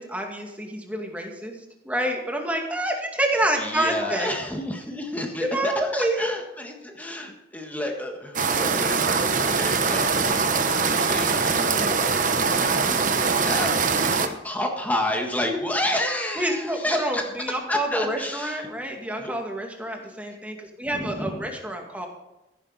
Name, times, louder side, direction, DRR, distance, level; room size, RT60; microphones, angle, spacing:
voice 1, 0.0-1.5 1.8-4.3 5.4-6.3 15.4-15.7 16.4-22.1, right 1 dB, 10° right, 2 dB, 2.1 m, -28 dB
voice 2, 3.6-12.0 12.2-17.3 17.7-18.7 19.2-19.3 20.9-21.5, left 1 dB, 10° left, 2 dB, 1.6 m, -31 dB
sound 1, 8.4-14.3, right 4 dB, 45° right, 1.0 m, -22 dB
14.5 x 11.0 x 4.1 m, 0.95 s
head